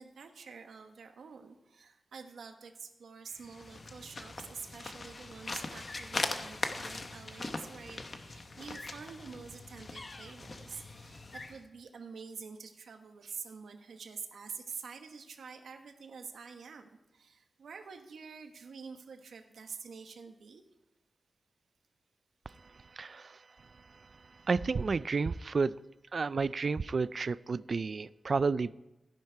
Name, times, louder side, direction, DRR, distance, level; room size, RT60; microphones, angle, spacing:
voice 1, 0.0-20.6, right 5 dB, 85° right, 6 dB, 1.2 m, -47 dB
sound 1, 3.3-11.6, left 3 dB, 35° left, 1.0 m, -40 dB
voice 2, 22.9-23.4 24.5-25.8 26.1-28.7, right 4 dB, 45° right, 18 dB, 0.3 m, -31 dB
15.5 x 10.5 x 4.6 m, 0.95 s
wide cardioid pair, 145°, 0 cm